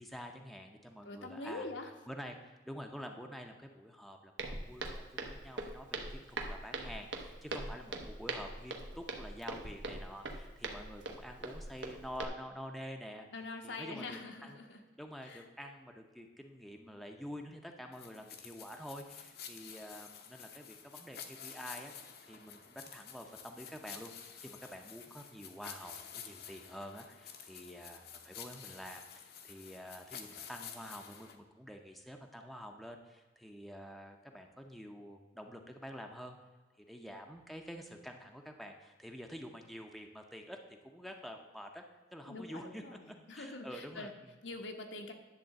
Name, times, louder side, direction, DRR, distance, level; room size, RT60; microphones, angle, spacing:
voice 1, 0.0-1.7 2.1-13.3 13.6-14.6 15.0-21.9 22.2-36.4 36.8-41.8 42.1-44.3, equal, ahead, 3 dB, 0.6 m, -48 dB
voice 2, 1.0-1.9 13.3-14.8 15.2-15.4 42.3-44.1 44.4-45.1, left 2 dB, 85° left, 3 dB, 1.2 m, -44 dB
Walk footsteps, 4.4-12.2, right 2 dB, 75° right, 1.1 m, -42 dB
sound 1, 17.9-31.4, left 7 dB, 55° left, 0.8 m, -50 dB
10.5 x 3.8 x 7.5 m, 1.3 s
head